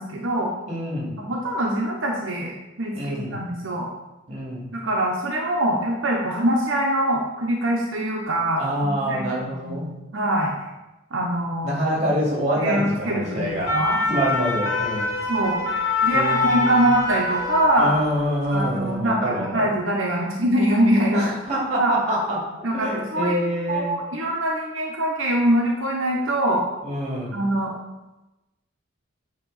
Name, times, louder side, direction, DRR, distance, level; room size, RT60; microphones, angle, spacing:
voice 1, 0.0-0.5 1.2-2.5 2.8-3.9 4.7-9.4 9.6-10.5 11.1-11.8 12.6-14.0 15.3-15.6 16.0-17.9 18.5-21.2 21.8-21.9 22.6-23.4 23.7-26.6 27.3-27.7, right 1 dB, 75° right, -2 dB, 0.9 m, -23 dB
voice 2, 0.7-1.1 2.9-3.4 4.3-4.7 8.6-9.9 11.6-13.7 14.1-15.1 16.1-16.9 17.8-19.7 21.1-22.4 22.7-24.0 26.8-27.4, equal, 35° right, -3 dB, 2.3 m, -26 dB
sound 1, 13.4-18.2 18.5-18.8, left 3 dB, 90° left, 1.1 m, -24 dB
8.7 x 3.0 x 5.6 m, 1.0 s
head